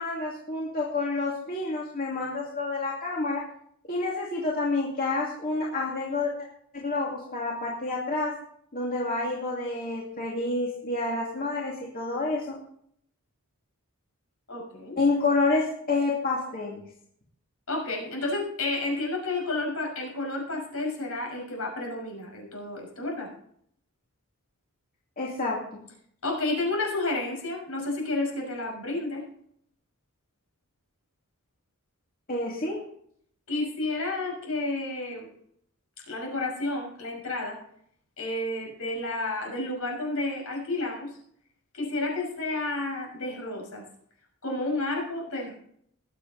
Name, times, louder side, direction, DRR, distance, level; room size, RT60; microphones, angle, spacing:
voice 1, 0.0-3.4 3.9-6.3 6.7-8.3 8.7-12.6 15.0-16.8 25.2-25.8 32.3-32.8, left 3 dB, 40° left, -3 dB, 2.5 m, -28 dB
voice 2, 14.5-15.0 17.7-23.3 26.2-29.2 33.5-35.3 36.1-37.6 38.2-41.1 41.7-43.8 44.4-45.5, left 2 dB, 70° left, 0 dB, 6.2 m, -31 dB
21.0 x 7.9 x 4.0 m, 0.66 s
head